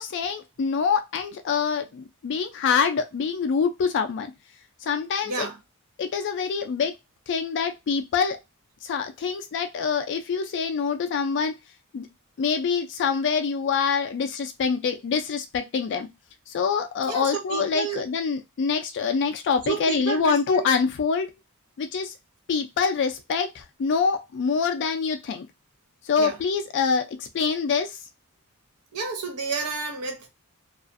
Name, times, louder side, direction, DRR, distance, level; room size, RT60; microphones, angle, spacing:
voice 1, 0.0-4.3 4.8-5.5 6.0-6.9 7.3-8.4 8.8-11.6 11.9-12.1 12.4-16.1 16.5-21.3 21.8-22.1 22.5-25.5 26.0-28.0, left 5 dB, 55° left, 0.3 m, -25 dB
voice 2, 5.2-5.6 17.1-18.0 19.7-20.7 26.2-26.4 28.9-30.3, right 5 dB, 85° right, 0.7 m, -30 dB
2.4 x 2.3 x 2.4 m
head